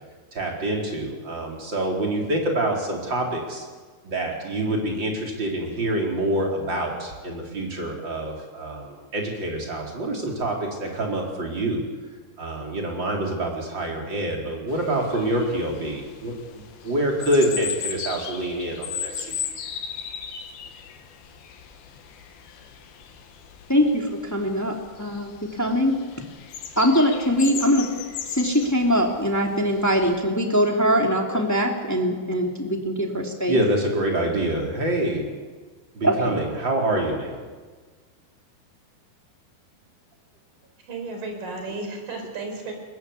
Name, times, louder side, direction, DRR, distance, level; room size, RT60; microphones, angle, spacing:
voice 1, 0.3-3.6 4.0-11.9 12.4-19.4 31.3-31.4 33.5-35.3 35.9-37.4, right 1 dB, 30° right, 0 dB, 4.6 m, -26 dB
sound 1, 14.7-30.2, left 8 dB, 70° left, 3.5 m, -37 dB
voice 2, 23.7-24.7 25.0-26.0 26.8-27.9 28.3-33.6 36.0-36.3, equal, 5° left, 1 dB, 1.9 m, -22 dB
voice 3, 40.9-42.7, right 3 dB, 60° right, 3 dB, 6.1 m, -33 dB
21.5 x 20.5 x 8.4 m, 1.4 s
omnidirectional pair, 4.5 m